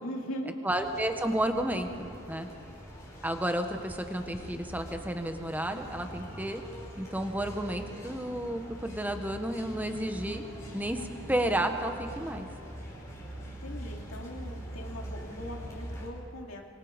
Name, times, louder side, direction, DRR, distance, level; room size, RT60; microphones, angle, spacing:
voice 1, 0.0-0.5 13.6-16.6, equal, 90° left, 0 dB, 2.7 m, -40 dB
voice 2, 0.6-2.5 3.2-6.6 7.0-10.4 10.7-12.5, right 1 dB, 10° right, 6 dB, 1.3 m, -32 dB
sound 1, 0.7-16.1, equal, 15° left, 4.9 m, -43 dB
25.0 x 24.0 x 5.3 m, 3.0 s
head